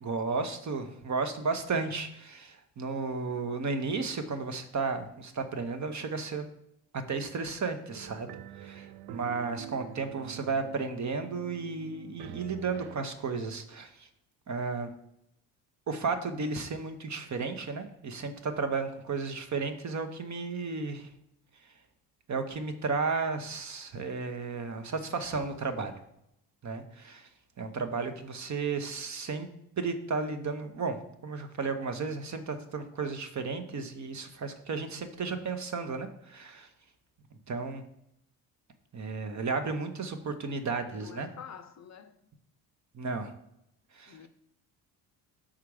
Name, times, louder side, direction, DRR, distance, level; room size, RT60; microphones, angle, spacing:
voice 1, 0.0-6.4 6.9-8.3 8.6-14.1 14.5-14.9 15.9-21.1 22.3-25.9 26.6-27.3 27.6-29.5 29.8-31.0 31.2-36.7 37.5-37.8 38.9-41.3 42.9-43.3 43.9-44.2, right 4 dB, 40° right, 0.9 m, -33 dB
sound 1, 7.9-13.0, right 12 dB, 55° right, 0.5 m, -46 dB
voice 2, 40.9-42.2 44.1-44.3, left 7 dB, 35° left, 0.6 m, -48 dB
5.7 x 3.7 x 4.8 m
hypercardioid pair, 55°, 46 cm